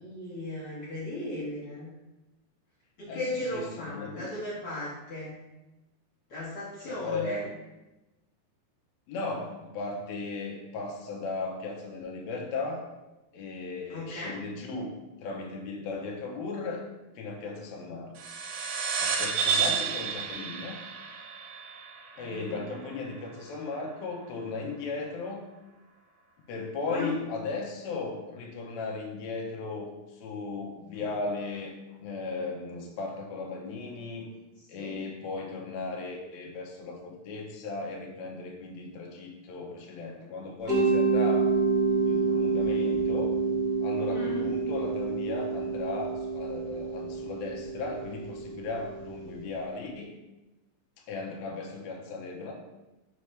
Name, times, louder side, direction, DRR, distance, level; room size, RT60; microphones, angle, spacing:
voice 1, 0.0-1.9 3.0-5.4 6.3-7.4 13.9-14.4 22.1-22.6 26.9-27.1 34.7-35.0 44.1-44.5, left 2 dB, 50° left, -8 dB, 1.8 m, -36 dB
voice 2, 3.5-4.3 6.8-7.4 9.1-12.9 13.3-14.9 15.2-16.9 17.2-18.1 19.0-20.8 22.2-25.5 26.5-34.3 34.7-41.5 42.0-50.1 51.1-52.5, left 3 dB, 75° left, 1 dB, 1.7 m, -36 dB
sound 1, 18.2-23.1, right 6 dB, 85° right, 2.4 m, -31 dB
Mallet percussion, 40.7-49.4, right 4 dB, 55° right, 1.0 m, -28 dB
7.1 x 4.1 x 3.3 m, 1.0 s
omnidirectional pair, 4.1 m